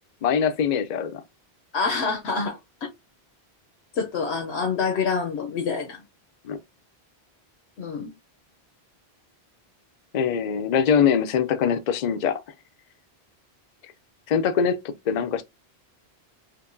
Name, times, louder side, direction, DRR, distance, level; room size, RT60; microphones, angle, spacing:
voice 1, 0.2-1.2 6.4-6.6 10.1-12.4 14.3-15.4, left 7 dB, 50° left, 0.6 m, -23 dB
voice 2, 1.7-2.6 3.9-6.0 7.8-8.1, left 5 dB, 85° left, 1.0 m, -26 dB
4.6 x 2.6 x 2.6 m
omnidirectional pair, 1.1 m